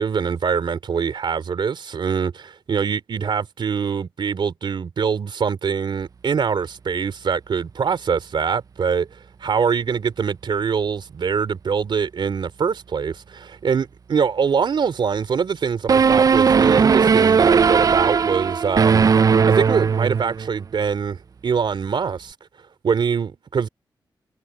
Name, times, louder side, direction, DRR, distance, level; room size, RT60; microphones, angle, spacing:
voice 1, 0.0-9.1 9.4-22.3 22.8-23.7, right 6 dB, 75° right, 3.6 m, -24 dB
sound 1, 15.9-20.5, right 6 dB, 45° right, 0.3 m, -17 dB
open air
cardioid pair, 60°, 8 cm